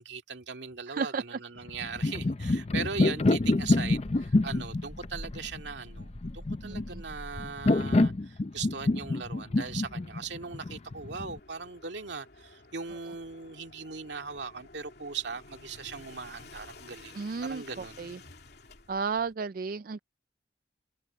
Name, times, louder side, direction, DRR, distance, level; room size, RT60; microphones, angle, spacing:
voice 1, 0.0-18.1, right 5 dB, 70° right, 2.2 m, -39 dB
voice 2, 0.9-1.4 6.6-7.0 17.1-18.2 18.9-20.0, right 5 dB, 50° right, 0.4 m, -33 dB
sound 1, 1.7-11.4, left 2 dB, 35° left, 0.5 m, -27 dB
sound 2, 3.3-8.0 9.4-19.3, left 1 dB, 60° left, 3.1 m, -50 dB
head